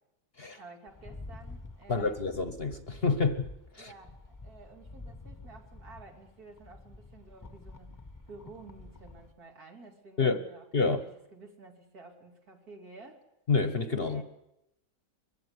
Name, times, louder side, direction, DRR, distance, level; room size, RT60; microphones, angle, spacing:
voice 1, 0.6-2.2 3.8-8.0 8.3-13.2 14.0-14.2, right 3 dB, 65° right, 2 dB, 3.3 m, -52 dB
Rattle, 0.9-9.3, left 2 dB, 15° left, 1.0 m, -49 dB
voice 2, 1.9-3.4 3.7-3.9 10.2-10.4 10.7-11.0 13.5-14.2, left 4 dB, 40° left, 10 dB, 1.1 m, -28 dB
22.0 x 16.0 x 9.7 m, 0.89 s
omnidirectional pair, 1.7 m